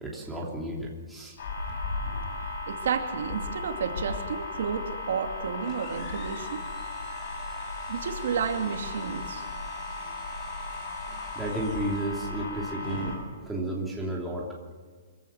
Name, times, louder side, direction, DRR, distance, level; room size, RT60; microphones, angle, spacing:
voice 1, 0.0-1.4 11.1-13.1 13.4-14.5, right 1 dB, 5° right, -4 dB, 3.0 m, -33 dB
sound 1, 1.4-13.2, left 2 dB, 40° left, 7.6 m, -36 dB
voice 2, 2.4-6.6 7.9-9.5, right 6 dB, 65° right, 5 dB, 2.6 m, -31 dB
sound 2, 5.6-12.3, left 6 dB, 20° left, 2.2 m, -50 dB
25.0 x 16.5 x 7.3 m, 1.5 s
hypercardioid pair, 175°, 0 cm